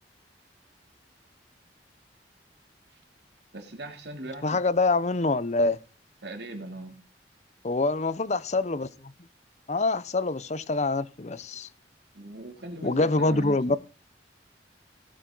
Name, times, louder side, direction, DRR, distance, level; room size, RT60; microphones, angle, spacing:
voice 1, 3.5-4.6 6.2-7.0 12.1-13.8, right 1 dB, 70° right, 3.0 m, -39 dB
voice 2, 4.4-5.8 7.6-9.1 9.7-11.7 12.8-13.8, left 3 dB, 40° left, 0.7 m, -25 dB
18.0 x 8.7 x 3.9 m
head